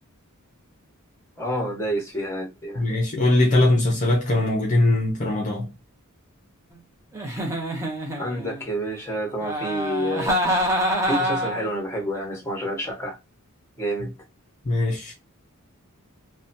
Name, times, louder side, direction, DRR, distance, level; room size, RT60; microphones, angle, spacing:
voice 1, 1.4-2.8 8.2-10.6 11.0-13.2 13.8-14.1, right 1 dB, 10° left, 1.0 m, -29 dB
voice 2, 2.8-5.7 14.7-15.1, left 1 dB, 35° left, 0.6 m, -21 dB
Giggle, 7.1-8.6 9.4-11.7, equal, 15° right, 0.7 m, -26 dB
2.8 x 2.2 x 2.5 m
head